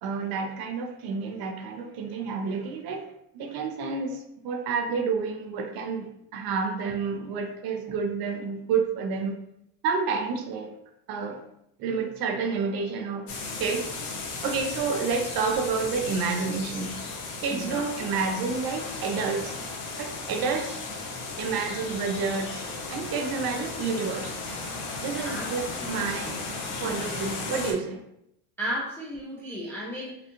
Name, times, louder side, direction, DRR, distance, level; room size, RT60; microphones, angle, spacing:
voice 1, 0.0-3.0 3.3-9.4 9.8-10.7 11.1-11.4 11.8-13.3 13.6-13.9 14.4-16.9 17.4-19.6 20.0-20.8 21.4-22.6 22.9-24.4 25.0-26.4 26.8-28.0, right 5 dB, 50° right, 4 dB, 0.6 m, -29 dB
sound 1, 13.3-27.7, left 3 dB, 80° left, 1.3 m, -35 dB
voice 2, 17.5-17.9 25.2-26.4 28.6-30.2, equal, 5° left, -5 dB, 0.3 m, -35 dB
5.0 x 2.3 x 2.9 m, 0.78 s
cardioid pair, 155°, 48 cm